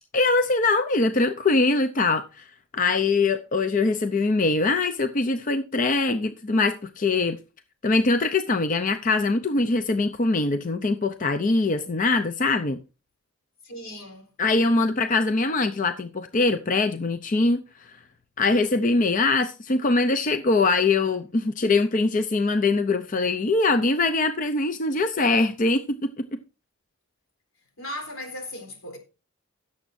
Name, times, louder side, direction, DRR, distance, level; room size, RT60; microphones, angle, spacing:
voice 1, 0.1-7.4 7.8-12.8 14.4-18.0 18.4-26.4, left 3 dB, 40° left, 0.5 m, -23 dB
voice 2, 13.6-14.3 27.8-29.0, left 1 dB, 80° left, 4.0 m, -37 dB
17.0 x 7.2 x 2.6 m
head